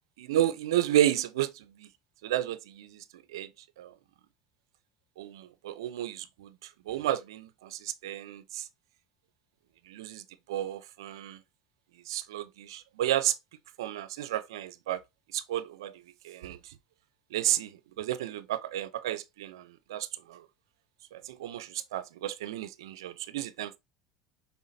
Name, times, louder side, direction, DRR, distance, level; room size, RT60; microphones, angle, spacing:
voice 1, 0.2-1.9 2.2-3.5 3.8-3.9 5.2-6.5 6.9-8.7 9.9-10.2 10.5-11.4 12.1-13.4 13.8-15.0 15.3-16.6 17.3-20.4 21.1-23.8, right 12 dB, 85° right, 0.5 m, -32 dB
5.6 x 3.5 x 2.6 m
hypercardioid pair, 85°, 2 cm